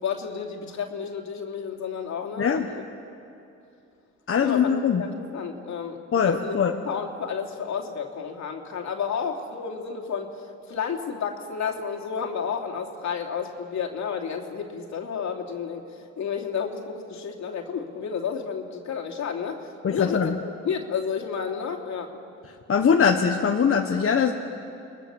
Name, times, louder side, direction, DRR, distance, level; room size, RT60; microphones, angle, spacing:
voice 1, 0.0-2.8 4.4-6.6 6.8-10.3 10.7-15.8 16.2-19.6 19.9-20.3 20.6-22.2, left 6 dB, 65° left, 2 dB, 3.1 m, -31 dB
voice 2, 4.3-5.0 6.1-6.8 19.8-20.3 22.7-24.3, left 6 dB, 45° left, 3 dB, 1.5 m, -21 dB
29.5 x 22.0 x 7.3 m, 2.7 s
cardioid pair, 90°, 30 cm